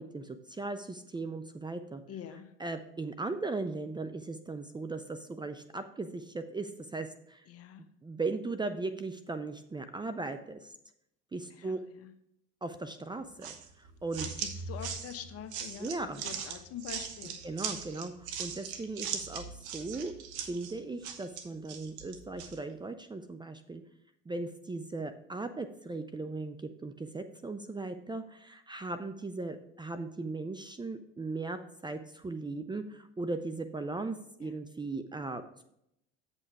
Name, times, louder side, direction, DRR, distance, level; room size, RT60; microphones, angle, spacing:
voice 1, 0.0-2.0 2.6-7.5 8.0-10.7 11.3-11.8 12.6-14.3 15.8-16.6 17.4-20.1 20.5-23.8 24.3-26.6 26.8-35.6, right 3 dB, 15° right, 9 dB, 0.5 m, -38 dB
voice 2, 2.1-2.5 7.5-7.8 11.6-11.7 12.0-12.1 14.2-15.9 16.2-17.4 34.4-34.5, left 9 dB, 45° left, 8 dB, 1.0 m, -44 dB
sound 1, 13.4-22.6, right 7 dB, 80° right, 1.1 m, -40 dB
8.3 x 5.6 x 4.7 m, 0.76 s
hypercardioid pair, 75°, 33 cm